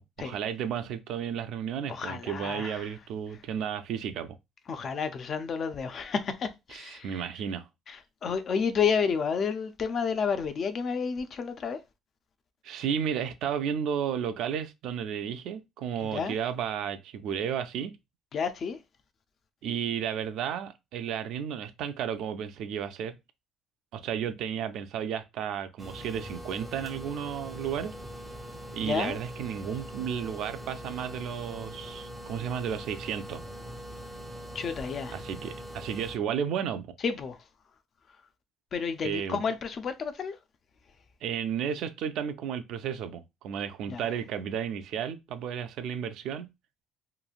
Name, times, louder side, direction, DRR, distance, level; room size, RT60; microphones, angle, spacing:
voice 1, 0.2-4.4 6.7-7.7 12.6-17.9 19.6-23.2 23.9-28.0 28.7-33.4 35.1-36.9 39.0-39.4 41.2-46.5, right 8 dB, 70° right, 0.4 m, -33 dB
voice 2, 1.9-2.9 4.7-7.3 7.9-11.8 16.0-16.3 18.3-18.8 28.8-29.2 34.5-35.1 37.0-37.4 38.7-40.4 43.9-44.0, left 6 dB, 45° left, 0.4 m, -31 dB
sound 1, 25.8-36.2, equal, 10° right, 0.5 m, -42 dB
3.0 x 2.5 x 2.3 m
cardioid pair, 130°, 0 cm